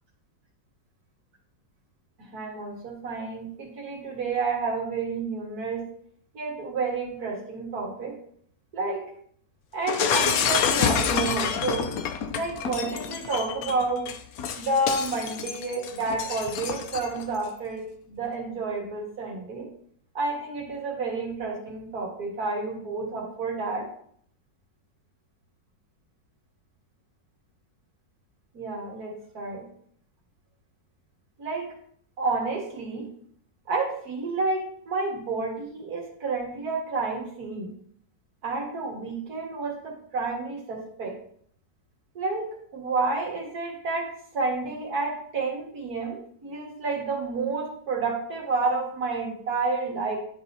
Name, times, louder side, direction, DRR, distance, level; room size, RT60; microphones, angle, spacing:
voice 1, 2.3-5.8 6.3-8.1 8.7-9.0 9.7-11.9 12.3-14.1 14.6-19.7 20.1-23.9 28.5-29.6 31.4-31.7 32.2-33.1 33.7-37.7 38.4-41.1 42.2-50.2, right 3 dB, 55° right, -3 dB, 2.1 m, -30 dB
Shatter, 9.9-17.2, left 7 dB, 70° left, 0.9 m, -28 dB
11.0 x 4.0 x 2.7 m, 0.62 s
omnidirectional pair, 2.0 m